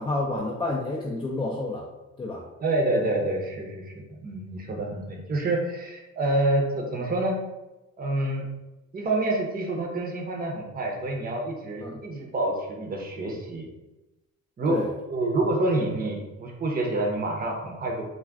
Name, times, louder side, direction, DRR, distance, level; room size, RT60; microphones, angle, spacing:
voice 1, 0.0-1.8 2.2-2.5 11.8-12.0 14.7-14.9, left 2 dB, 15° left, -3 dB, 0.4 m, -29 dB
voice 2, 2.6-7.4 8.0-8.4 8.9-13.7 14.6-14.8 15.1-18.0, right 2 dB, 30° right, 0 dB, 0.7 m, -27 dB
2.4 x 2.2 x 3.4 m, 0.99 s
cardioid pair, 90°, 30 cm